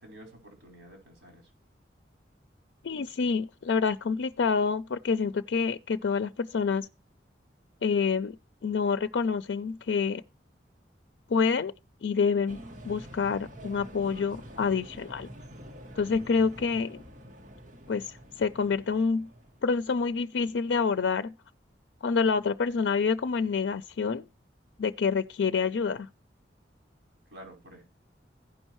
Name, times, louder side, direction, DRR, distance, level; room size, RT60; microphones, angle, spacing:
voice 1, 0.0-1.5 27.3-27.8, right 1 dB, 70° right, 4.7 m, -50 dB
voice 2, 2.8-6.9 7.8-8.4 8.6-10.2 11.3-11.7 12.0-15.3 16.0-17.0 17.9-19.3 19.6-21.3 22.0-24.3 24.8-26.1, left 5 dB, 85° left, 0.4 m, -27 dB
sound 1, 12.5-19.6, equal, 45° right, 1.8 m, -47 dB
15.5 x 5.4 x 3.0 m
head